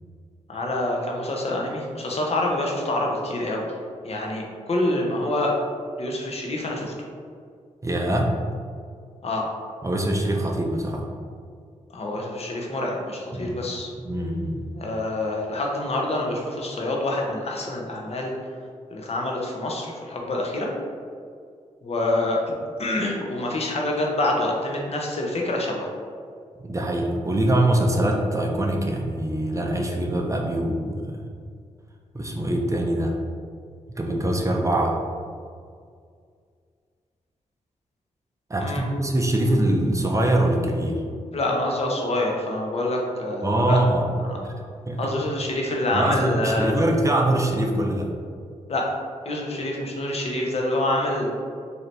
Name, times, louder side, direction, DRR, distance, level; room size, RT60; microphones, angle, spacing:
voice 1, 0.5-3.7 4.0-5.5 6.0-6.9 9.2-9.5 11.9-13.9 14.7-18.3 18.9-20.7 21.8-22.4 22.8-25.9 38.6-38.8 41.3-43.8 44.2-44.4 45.0-46.7 48.7-48.9 49.3-51.3, left 1 dB, 50° left, -1 dB, 0.8 m, -26 dB
voice 2, 7.8-8.3 9.8-11.1 13.3-13.6 14.0-14.6 26.6-31.2 32.1-33.2 34.0-35.0 38.5-41.0 43.4-44.1 44.4-44.5 44.9-45.1 45.9-48.1, right 1 dB, 25° right, 1 dB, 0.5 m, -23 dB
4.1 x 2.8 x 3.2 m, 2.2 s
cardioid pair, 60°, 13 cm